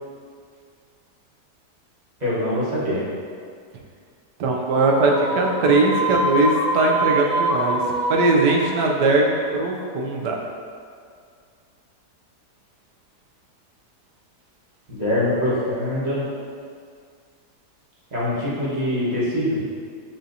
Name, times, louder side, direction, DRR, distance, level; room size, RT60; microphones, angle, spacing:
voice 1, 2.2-3.1 14.9-16.2 18.1-19.7, left 1 dB, 30° right, -10 dB, 1.0 m, -23 dB
voice 2, 4.4-7.8 8.1-10.4, right 3 dB, 85° right, 0 dB, 1.2 m, -20 dB
sound 1, 4.7-10.2, right 1 dB, 80° left, 1.2 m, -26 dB
6.9 x 2.8 x 2.6 m, 2.1 s
omnidirectional pair, 1.8 m